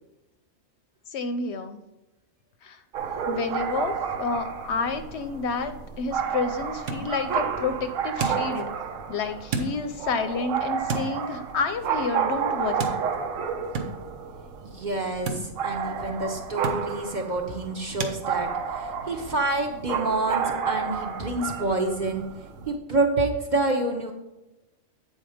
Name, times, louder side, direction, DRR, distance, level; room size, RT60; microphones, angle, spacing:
voice 1, 1.1-1.8 2.6-2.8 3.3-8.7 9.1-12.9, left 4 dB, 65° left, 9 dB, 0.8 m, -30 dB
sound 1, 2.9-22.7, right 7 dB, 90° right, 1.1 m, -31 dB
sound 2, 5.8-18.2, right 4 dB, 70° right, 1.2 m, -37 dB
voice 2, 14.6-22.2 22.6-24.1, right 2 dB, 40° right, 3 dB, 0.8 m, -28 dB
8.2 x 4.2 x 4.9 m, 0.98 s
omnidirectional pair, 1.3 m